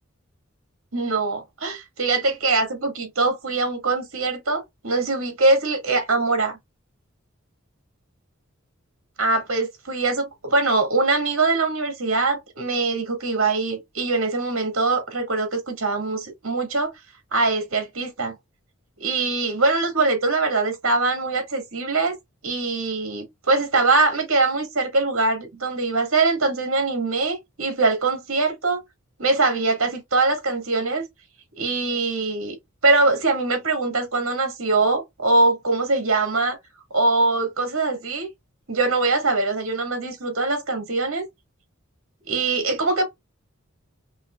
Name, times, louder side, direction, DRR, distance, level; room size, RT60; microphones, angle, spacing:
voice 1, 0.9-6.6 9.2-16.9 17.3-18.3 19.0-22.2 22.4-28.8 29.2-31.1 31.6-32.6 32.8-36.6 36.9-38.3 38.7-41.2 42.3-43.0, right 3 dB, 85° right, 1.9 m, -22 dB
5.4 x 2.9 x 2.3 m
head